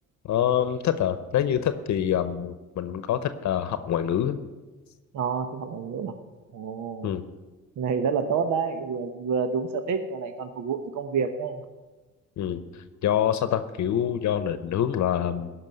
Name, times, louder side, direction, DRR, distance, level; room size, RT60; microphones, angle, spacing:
voice 1, 0.2-4.4 7.0-7.2 12.4-15.5, left 10 dB, 65° left, 11 dB, 0.8 m, -26 dB
voice 2, 5.1-6.1 6.5-7.1 7.8-11.6, right 6 dB, 75° right, 8 dB, 1.0 m, -28 dB
16.0 x 5.9 x 9.3 m, 1.2 s
cardioid pair, 90°, 30 cm